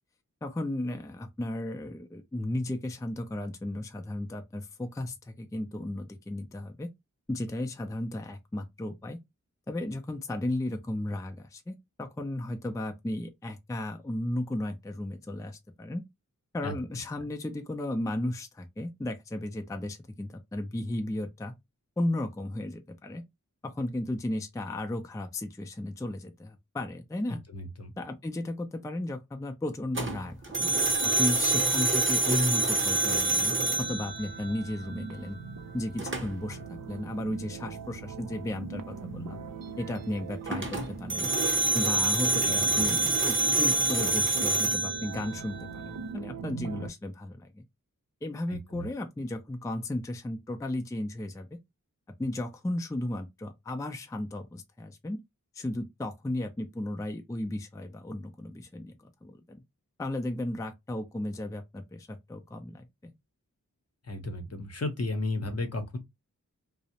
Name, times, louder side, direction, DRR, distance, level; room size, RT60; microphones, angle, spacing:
voice 1, 0.4-6.9 7.3-9.2 9.7-16.0 16.5-21.5 22.0-23.2 23.6-27.4 28.0-30.7 31.0-35.4 35.7-39.4 39.8-41.3 41.7-47.6 48.2-51.5 52.2-55.2 55.5-59.6 60.0-63.1, left 1 dB, 10° left, 0.4 m, -34 dB
voice 2, 27.5-27.9 42.4-42.6 48.7-48.9 64.1-66.0, left 2 dB, 50° left, 0.7 m, -33 dB
sound 1, 30.0-34.9 36.0-36.5 40.5-45.9, right 2 dB, 35° right, 0.8 m, -27 dB
sound 2, 32.4-46.9, right 5 dB, 75° right, 0.5 m, -42 dB
2.4 x 2.0 x 2.8 m
wide cardioid pair, 40°, 33 cm